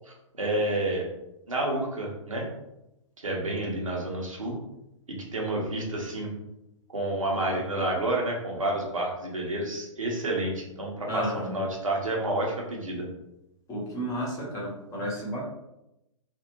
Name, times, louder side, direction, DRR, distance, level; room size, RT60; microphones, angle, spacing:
voice 1, 0.0-1.1 1.5-2.5 3.2-4.6 5.1-6.3 6.9-13.1, right 1 dB, 75° right, -1 dB, 0.9 m, -29 dB
voice 2, 11.1-11.5 13.7-15.4, equal, 20° left, -5 dB, 0.9 m, -32 dB
2.5 x 2.4 x 2.9 m, 0.88 s
figure-of-eight pair, 115°, 17 cm